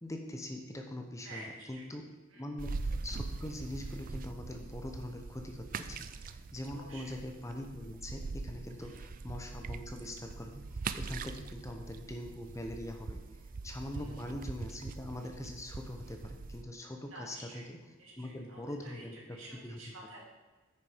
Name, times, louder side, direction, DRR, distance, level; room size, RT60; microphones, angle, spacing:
voice 1, 0.0-2.0 2.3-17.8 18.2-19.4 19.6-19.8, left 1 dB, 15° left, 3 dB, 0.8 m, -43 dB
voice 2, 1.2-1.8 2.3-2.5 6.7-7.1 8.8-9.0 13.9-14.1 17.0-17.6 18.0-20.2, right 1 dB, 75° right, -3 dB, 2.9 m, -50 dB
sound 1, 2.6-16.6, right 4 dB, 45° right, 0.4 m, -42 dB
9.2 x 6.7 x 5.0 m, 1.2 s
head